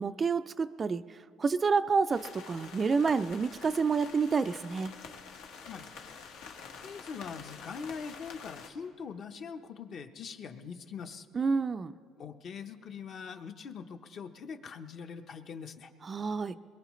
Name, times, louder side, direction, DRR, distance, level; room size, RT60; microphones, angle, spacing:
voice 1, 0.0-4.9 11.3-11.9 16.0-16.6, right 5 dB, 25° right, 12 dB, 0.3 m, -29 dB
sound 1, 2.1-8.7, left 5 dB, 85° left, 1.4 m, -48 dB
voice 2, 6.8-11.3 12.2-15.9, left 6 dB, 45° left, 7 dB, 0.8 m, -42 dB
22.0 x 21.0 x 3.1 m, 2.2 s
cardioid pair, 130°, 0 cm